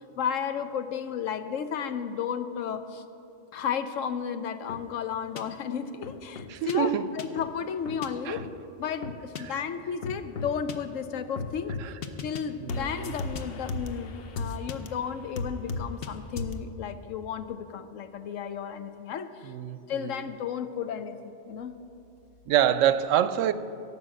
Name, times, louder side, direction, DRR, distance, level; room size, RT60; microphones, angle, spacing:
voice 1, 0.2-3.0 3.5-8.5 8.8-11.8 12.2-19.5 19.9-21.8, left 7 dB, 85° left, 10 dB, 1.1 m, -33 dB
sound 1, 4.7-4.8 5.4-5.5 6.0-6.7 7.2-7.5 7.9-8.1 8.4-8.5 9.0-9.4 10.0-10.7 11.4-12.4 12.7-14.9 15.4-16.1 16.4-16.6, left 4 dB, 55° left, 0.9 m, -35 dB
voice 2, 6.5-7.1 8.3-8.4 9.4-9.6 11.8-11.9 12.6-13.1 19.4-20.2 22.5-23.5, right 10 dB, 85° right, 14 dB, 0.9 m, -26 dB
17.0 x 5.9 x 7.6 m, 2.8 s
omnidirectional pair, 1.3 m